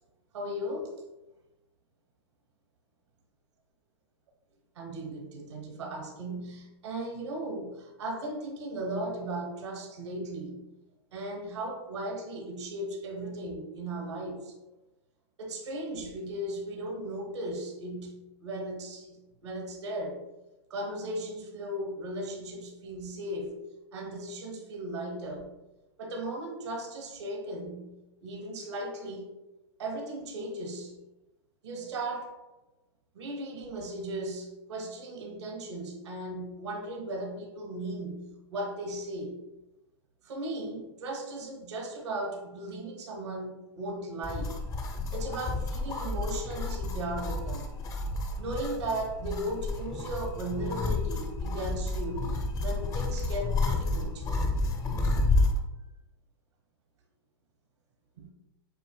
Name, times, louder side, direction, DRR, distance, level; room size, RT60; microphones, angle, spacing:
voice 1, 0.3-0.9 4.8-10.6 11.1-14.5 15.4-20.2 20.7-23.6 23.9-25.5 26.0-27.9 28.2-29.3 29.8-30.9 31.6-32.3 33.1-39.4 40.2-44.5 45.1-47.7 48.4-52.2 52.6-54.2 58.2-58.3, right 1 dB, 80° right, 2 dB, 1.2 m, -36 dB
sound 1, 44.2-55.6, left 2 dB, 25° left, 0.5 m, -30 dB
7.8 x 2.7 x 2.2 m, 1.0 s
hypercardioid pair, 120°, 14 cm